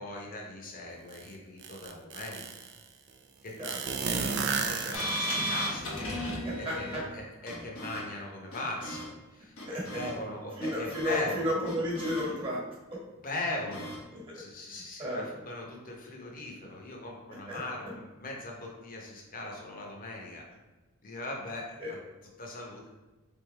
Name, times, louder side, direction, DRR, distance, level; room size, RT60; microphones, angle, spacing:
voice 1, 0.0-2.4 3.4-5.9 6.5-9.1 9.3-11.5 13.2-14.0 14.3-20.4 21.0-22.0 22.4-22.9, left 2 dB, 40° left, -1 dB, 0.9 m, -39 dB
sound 1, 1.1-1.2 1.6-2.7 3.6-5.4, right 5 dB, 55° right, 0.4 m, -32 dB
sound 2, 4.9-7.1 7.5-8.0 8.5-9.1 9.6-10.1 10.6-11.2 11.7-12.2 13.7-14.0, equal, 90° left, 1.1 m, -35 dB
voice 2, 6.4-7.0 9.7-10.0 10.6-12.6 12.9-13.0 14.1-14.7 15.0-15.3 17.5-17.6 21.8-22.0, equal, 25° right, -4 dB, 1.4 m, -33 dB
3.9 x 3.6 x 3.3 m, 1.2 s
head